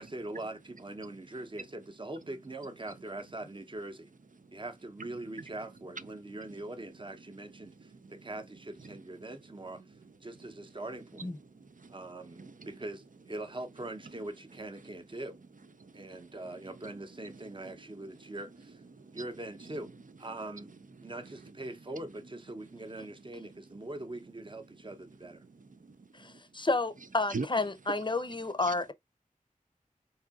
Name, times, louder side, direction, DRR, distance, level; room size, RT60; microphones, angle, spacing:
voice 1, 0.0-4.1 4.5-9.8 10.2-11.3 11.9-15.4 15.9-18.8 19.1-25.4, right 2 dB, 35° right, 0.8 m, -42 dB
voice 2, 7.6-8.3 8.8-9.0 10.0-10.1 11.5-12.7 15.8-17.0 17.2-18.1 18.9-19.3 19.6-19.8 20.6-20.7 25.4-26.3 27.3-27.5 28.6-28.7, right 4 dB, 65° right, 0.5 m, -45 dB
voice 3, 26.1-28.9, left 3 dB, 35° left, 0.6 m, -31 dB
4.8 x 2.7 x 2.4 m
wide cardioid pair, 45°, 14 cm